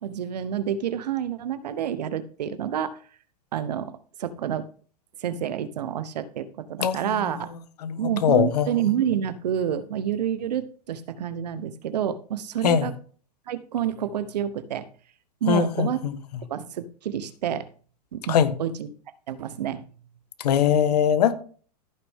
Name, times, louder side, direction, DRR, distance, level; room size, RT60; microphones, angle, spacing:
voice 1, 0.0-3.0 3.5-4.7 5.2-7.5 8.0-12.9 13.5-14.9 15.4-16.0 16.5-17.7 18.1-18.9 19.3-19.8, right 9 dB, 80° right, 1.1 m, -28 dB
voice 2, 6.8-7.2 7.8-8.7 12.6-12.9 15.5-16.2 18.3-18.5 20.4-21.3, left 8 dB, 75° left, 1.5 m, -21 dB
14.0 x 6.3 x 3.7 m
supercardioid pair, 160°, 21 cm